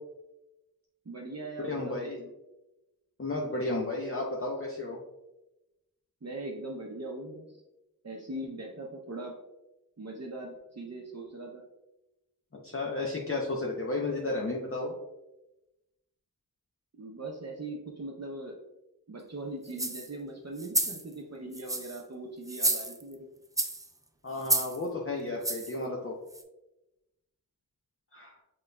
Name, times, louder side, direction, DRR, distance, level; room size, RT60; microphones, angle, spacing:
voice 1, 1.1-2.3 6.2-7.6 8.0-9.4 10.0-11.6 17.0-18.6 19.1-23.3, right 2 dB, 45° right, -1 dB, 0.6 m, -40 dB
voice 2, 1.6-2.2 3.2-5.0 12.6-14.9 24.2-26.1 28.1-28.3, left 2 dB, 40° left, -2 dB, 0.6 m, -33 dB
sound 1, 19.7-20.1 20.6-21.0 21.5-22.0 22.5-23.1 23.6-23.9 24.4-24.8 25.4-25.7 26.3-26.4, right 1 dB, 10° right, 0.4 m, -30 dB
6.1 x 3.9 x 2.2 m, 0.96 s
wide cardioid pair, 50°, 36 cm